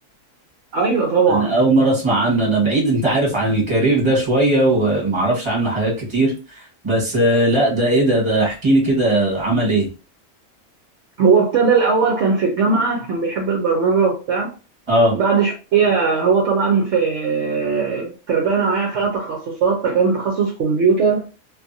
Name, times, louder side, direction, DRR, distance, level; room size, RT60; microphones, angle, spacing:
voice 1, 0.7-1.5 11.2-14.5 15.1-21.2, right 5 dB, 65° right, 0.9 m, -18 dB
voice 2, 1.3-6.3 6.8-9.9 14.9-15.1, right 1 dB, 20° right, 1.3 m, -18 dB
2.6 x 2.5 x 2.6 m
omnidirectional pair, 1.4 m